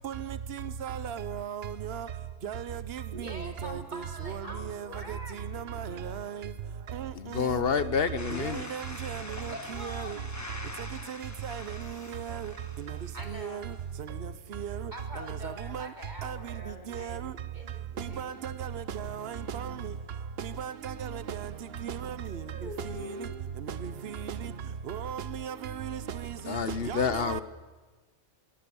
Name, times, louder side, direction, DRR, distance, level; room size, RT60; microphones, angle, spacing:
voice 1, 0.0-2.1 2.4-5.2 5.5-6.5 6.9-7.1 8.3-9.5 9.8-10.2 11.1-12.5 13.3-13.6 14.6-14.8 15.3-15.9 16.2-16.4 16.9-17.3 18.0-19.9 20.4-21.5 21.8-22.2 23.2-23.3 23.8-24.4 24.9-26.0 26.5-26.6 26.9-27.4, right 8 dB, 55° right, 1.1 m, -36 dB
voice 2, 3.1-5.4 5.6-6.1 9.4-10.3 13.1-13.8 14.9-18.4 22.3-23.3, equal, 40° right, 2.9 m, -44 dB
voice 3, 7.1-8.6 26.5-27.4, left 6 dB, 55° left, 1.0 m, -28 dB
sound 1, 8.2-14.0, left 1 dB, 15° left, 1.3 m, -44 dB
26.0 x 21.5 x 7.1 m
omnidirectional pair, 1.2 m